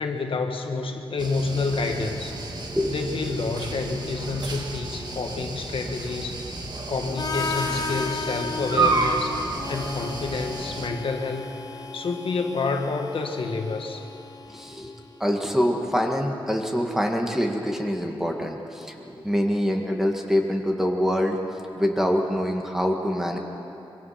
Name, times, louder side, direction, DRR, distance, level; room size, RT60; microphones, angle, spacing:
voice 1, 0.0-2.3 2.9-6.4 6.9-9.4 9.7-14.0, left 3 dB, 65° left, 4 dB, 1.7 m, -29 dB
sound 1, 1.2-10.9, right 3 dB, 45° right, 1.8 m, -31 dB
Harmonica, 7.2-15.1, left 4 dB, 40° left, 0.8 m, -35 dB
voice 2, 14.5-14.9 15.2-21.4 21.7-23.4, equal, 5° right, 2 dB, 1.8 m, -25 dB
25.5 x 23.0 x 5.9 m, 2.9 s
wide cardioid pair, 160°, 10 cm